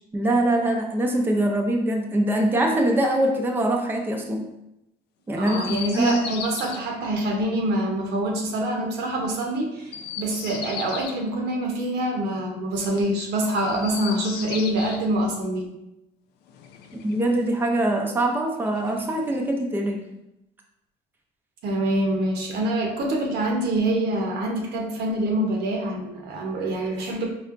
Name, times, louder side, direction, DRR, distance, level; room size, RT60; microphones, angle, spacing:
voice 1, 0.1-4.5 5.3-6.2 16.9-20.0, right 1 dB, 10° right, 1 dB, 0.5 m, -23 dB
Chirp tweet, 5.4-6.8 9.8-11.2 13.6-15.0 16.5-17.5 18.6-19.5, left 7 dB, 80° left, 0.5 m, -37 dB
voice 2, 5.4-15.7 21.6-27.3, right 1 dB, 80° right, 0 dB, 0.9 m, -25 dB
4.2 x 3.4 x 2.5 m, 0.88 s
cardioid pair, 110°, 17 cm